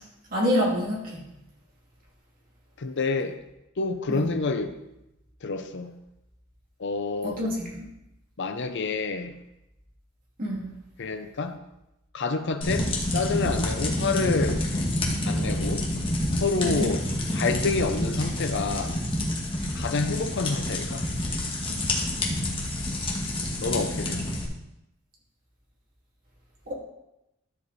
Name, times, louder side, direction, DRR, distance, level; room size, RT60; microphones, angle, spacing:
voice 1, 0.3-1.2 4.1-4.3 7.2-7.9 10.4-10.7 16.6-16.9 26.7-26.8, equal, 45° right, -4 dB, 2.8 m, -27 dB
voice 2, 2.8-3.4 3.8-4.7 5.4-5.9 6.8-7.4 8.4-9.4 11.0-11.6 12.1-14.6 15.3-15.9 16.4-17.1 17.3-19.0 19.8-21.1 23.6-24.3, left 4 dB, 60° left, 8 dB, 0.6 m, -28 dB
sound 1, 12.6-24.4, left 1 dB, 25° left, 1.6 m, -28 dB
13.0 x 5.0 x 4.1 m, 0.91 s
head